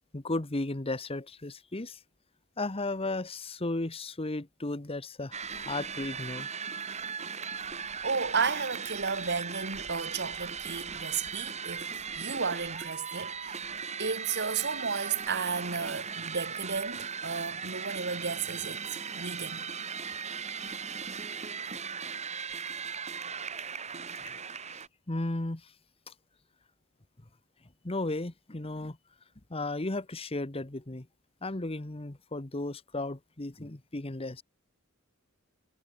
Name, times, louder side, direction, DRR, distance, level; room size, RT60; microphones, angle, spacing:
voice 1, 0.1-2.0 2.6-6.5 25.1-25.7 27.8-29.0 29.5-31.1 31.4-34.4, left 2 dB, 30° left, 1.2 m, -34 dB
sound 1, 5.3-24.9, right 6 dB, 35° right, 2.3 m, -38 dB
voice 2, 8.0-11.9 12.2-13.7 14.0-18.9 19.2-19.7, right 5 dB, 55° right, 2.2 m, -33 dB
head